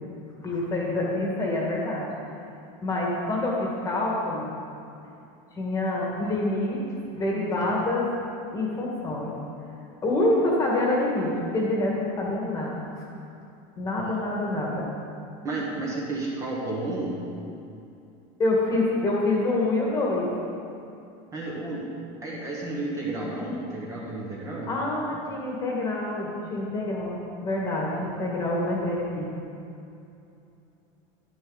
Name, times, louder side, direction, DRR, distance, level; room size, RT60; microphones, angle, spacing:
voice 1, 0.4-2.1 2.8-4.5 5.5-6.8 7.1-8.1 8.5-9.3 10.0-13.0 13.8-14.8 18.4-20.3 24.7-29.3, left 2 dB, 20° left, -3 dB, 1.7 m, -26 dB
voice 2, 15.4-17.2 21.3-21.9 22.2-24.7, right 2 dB, 20° right, -4 dB, 1.3 m, -32 dB
10.5 x 10.5 x 4.0 m, 2.7 s
cardioid pair, 175°, 17 cm